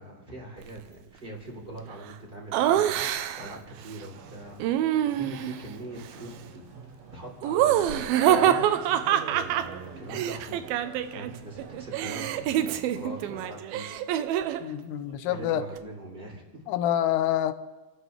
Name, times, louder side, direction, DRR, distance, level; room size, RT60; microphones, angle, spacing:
voice 1, 0.0-6.7 7.1-10.6 11.1-13.9 15.2-16.6, right 1 dB, 15° right, 0 dB, 2.9 m, -42 dB
Laughter, 2.5-3.6 4.6-5.6 7.4-11.3 11.6-14.7, right 11 dB, 80° right, 2.4 m, -26 dB
sound 1, 4.1-13.2, right 5 dB, 55° right, 2.1 m, -48 dB
voice 2, 14.6-15.7 16.7-17.5, left 11 dB, 85° left, 11 dB, 2.8 m, -26 dB
28.5 x 13.0 x 3.2 m, 1.2 s
omnidirectional pair, 4.6 m